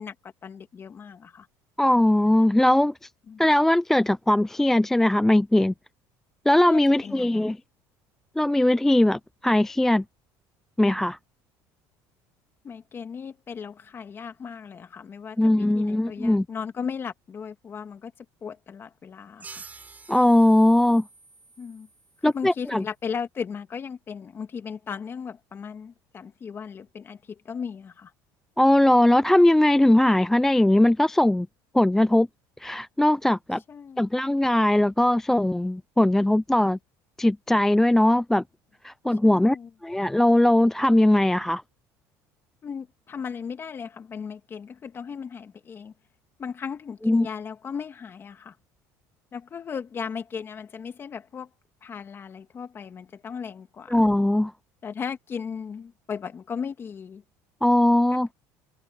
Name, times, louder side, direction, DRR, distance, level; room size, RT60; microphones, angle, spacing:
voice 1, 0.0-1.5 3.3-3.5 6.6-7.6 12.6-18.1 18.4-19.6 21.6-21.9 22.2-28.1 33.7-34.0 39.2-39.7 42.6-45.9 46.4-48.6 49.3-51.5 51.8-54.0 54.8-57.2 58.1-58.3, left 6 dB, 30° left, 2.1 m, -36 dB
voice 2, 1.8-2.9 3.4-5.7 6.5-7.6 8.4-10.0 10.8-11.2 15.4-16.5 20.1-21.0 22.2-22.8 28.6-31.5 31.7-32.3 32.6-33.6 34.0-36.8 37.2-38.4 38.8-39.6 39.8-41.6 47.0-47.3 53.9-54.5 57.6-58.3, left 1 dB, 5° left, 0.3 m, -20 dB
sound 1, 19.4-22.6, right 4 dB, 20° right, 7.0 m, -48 dB
cardioid pair, 125°, 7 cm